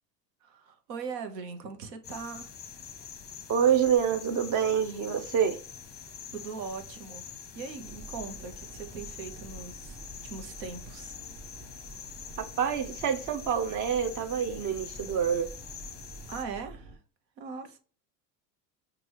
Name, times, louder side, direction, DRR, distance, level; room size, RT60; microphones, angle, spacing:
voice 1, 0.4-2.5 6.3-7.2 7.5-11.2 16.3-17.0 17.4-17.8, right 5 dB, 80° right, 1.1 m, -40 dB
sound 1, 2.0-16.4, left 7 dB, 20° left, 0.6 m, -45 dB
voice 2, 3.5-5.6 12.4-15.5, right 8 dB, 40° right, 0.7 m, -27 dB
sound 2, 7.8-17.0, right 3 dB, 60° right, 1.3 m, -48 dB
6.1 x 2.6 x 3.0 m
hypercardioid pair, 90°, 49 cm